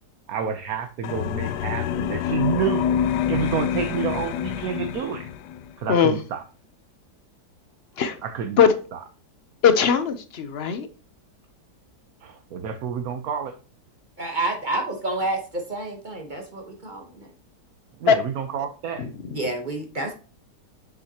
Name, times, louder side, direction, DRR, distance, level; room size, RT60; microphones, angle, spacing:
voice 1, 0.3-2.9 3.3-5.3 5.8-6.4 8.2-8.6 8.9-9.0 12.2-13.5 18.0-19.1, right 7 dB, 65° right, 6 dB, 1.2 m, -29 dB
sound 1, 1.0-5.7, left 9 dB, 75° left, 1.2 m, -26 dB
voice 2, 9.6-10.9 18.1-18.2 19.0-19.4, left 7 dB, 60° left, 11 dB, 0.6 m, -20 dB
voice 3, 14.2-17.3 19.3-20.1, right 2 dB, 30° right, 3 dB, 1.1 m, -29 dB
7.6 x 6.5 x 2.9 m, 0.35 s
omnidirectional pair, 1.8 m